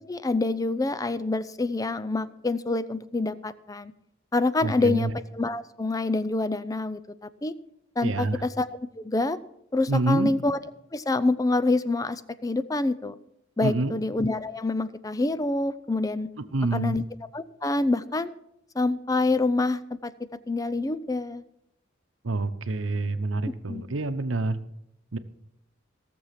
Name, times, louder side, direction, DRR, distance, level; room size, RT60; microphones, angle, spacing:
voice 1, 0.1-3.9 4.3-7.5 8.0-8.7 9.0-9.4 9.7-10.6 10.9-13.2 13.6-16.3 16.7-17.0 17.3-18.3 18.8-20.1 20.5-21.4 23.7-23.8, left 2 dB, 20° left, 15 dB, 0.5 m, -26 dB
voice 2, 4.6-5.1 8.0-8.4 9.9-10.3 13.6-13.9 16.5-17.0 22.2-24.6 25.1-25.2, right 2 dB, 85° right, 12 dB, 0.8 m, -27 dB
17.5 x 7.1 x 5.8 m, 0.80 s
head